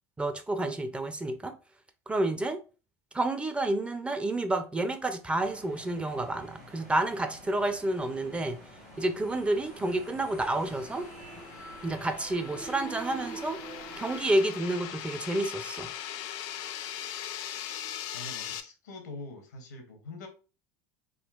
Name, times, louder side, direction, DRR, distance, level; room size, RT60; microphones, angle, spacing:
voice 1, 0.2-1.5 2.1-2.6 3.1-8.6 9.0-11.1 11.8-13.6 14.0-15.9, right 2 dB, 10° right, 0.4 m, -29 dB
sound 1, 5.3-14.4, right 1 dB, 90° right, 1.4 m, -51 dB
sound 2, 8.2-18.6, left 11 dB, 60° left, 0.3 m, -41 dB
sound 3, 9.2-14.2, right 4 dB, 75° right, 1.3 m, -45 dB
voice 2, 18.1-20.3, left 2 dB, 90° left, 0.8 m, -44 dB
3.7 x 2.2 x 2.3 m
hypercardioid pair, 85°, 9 cm